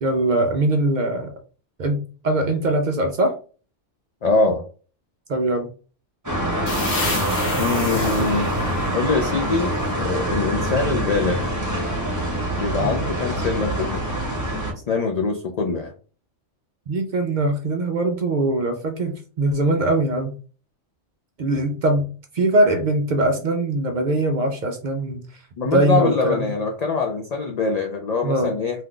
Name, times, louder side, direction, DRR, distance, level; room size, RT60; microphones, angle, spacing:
voice 1, 0.0-1.3 1.8-3.4 5.3-5.7 7.5-9.0 12.8-13.1 16.9-20.4 21.4-22.1 22.3-25.2 25.6-26.5 28.2-28.6, right 2 dB, 60° right, 5 dB, 0.5 m, -22 dB
voice 2, 4.2-4.6 7.6-8.5 8.9-11.5 12.6-14.0 14.9-15.9 25.6-28.8, left 3 dB, 75° left, 2 dB, 0.3 m, -23 dB
sound 1, 6.2-14.7, right 1 dB, 15° right, 1.0 m, -25 dB
sound 2, 6.7-10.3, left 3 dB, 40° left, 1.0 m, -32 dB
2.7 x 2.3 x 3.6 m, 0.38 s
omnidirectional pair, 1.3 m